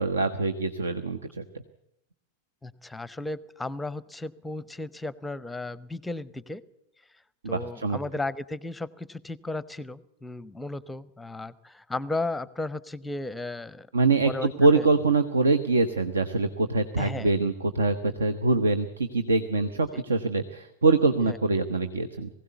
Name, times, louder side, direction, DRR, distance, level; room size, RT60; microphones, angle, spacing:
voice 1, 0.0-1.4 7.4-8.0 13.9-22.3, right 3 dB, 70° right, 11 dB, 1.0 m, -24 dB
voice 2, 2.6-6.6 7.5-13.9 14.2-14.8 17.0-17.3 19.9-20.0 21.3-21.4, left 2 dB, 5° left, 20 dB, 0.7 m, -35 dB
21.0 x 16.5 x 8.2 m, 0.79 s
figure-of-eight pair, 90°, 0 cm